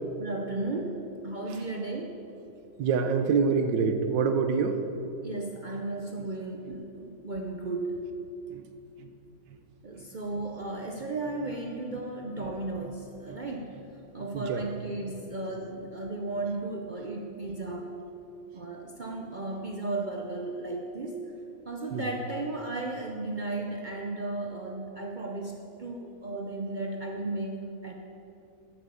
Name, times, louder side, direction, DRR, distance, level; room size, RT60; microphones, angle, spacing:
voice 1, 0.2-2.2 5.2-8.1 9.8-13.8 14.1-18.0 18.5-21.2 21.6-27.9, right 2 dB, 60° right, 1 dB, 0.4 m, -35 dB
voice 2, 2.8-4.8 8.5-8.7 9.0-9.1 13.3-13.4 13.7-13.8 14.2-14.7 21.9-22.1, right 5 dB, 85° right, 7 dB, 1.5 m, -27 dB
10.0 x 7.6 x 6.8 m, 2.7 s
omnidirectional pair, 1.9 m